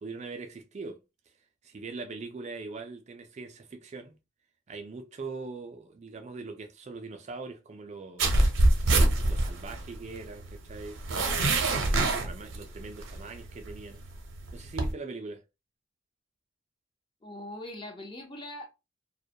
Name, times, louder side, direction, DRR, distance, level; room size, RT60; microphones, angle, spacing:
voice 1, 0.0-1.0 1.6-4.1 4.7-8.3 9.3-14.0 14.5-15.4, right 3 dB, 35° right, 0.4 m, -41 dB
sound 1, 8.2-14.9, right 2 dB, 80° right, 0.6 m, -26 dB
voice 2, 17.2-18.7, left 1 dB, 25° left, 0.5 m, -41 dB
2.2 x 2.1 x 2.6 m
head